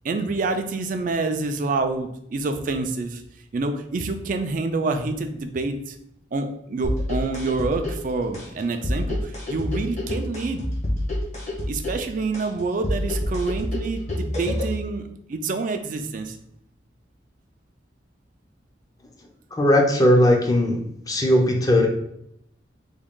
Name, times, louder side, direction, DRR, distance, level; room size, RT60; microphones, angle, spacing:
voice 1, 0.0-3.2 3.5-6.0 6.3-10.6 11.7-16.4, right 3 dB, 45° right, 7 dB, 0.4 m, -27 dB
sound 1, 6.8-14.8, left 1 dB, 40° left, 0.9 m, -28 dB
voice 2, 19.5-20.8 21.1-21.9, left 1 dB, 20° left, 2 dB, 0.5 m, -18 dB
3.6 x 2.3 x 3.6 m, 0.74 s
head